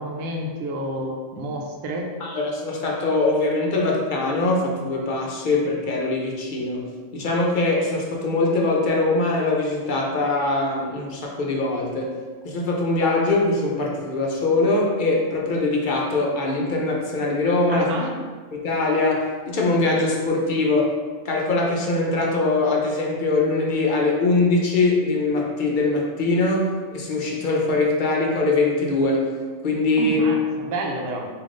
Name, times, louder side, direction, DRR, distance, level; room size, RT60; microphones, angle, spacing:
voice 1, 0.0-2.1 17.7-18.1 30.0-31.3, right 1 dB, 90° right, 1 dB, 1.0 m, -29 dB
voice 2, 2.2-6.9 7.1-12.1 12.4-17.9 18.5-20.9 21.2-29.3 29.6-30.2, left 2 dB, 50° left, -1 dB, 0.6 m, -22 dB
3.5 x 2.7 x 3.6 m, 1.5 s
omnidirectional pair, 1.3 m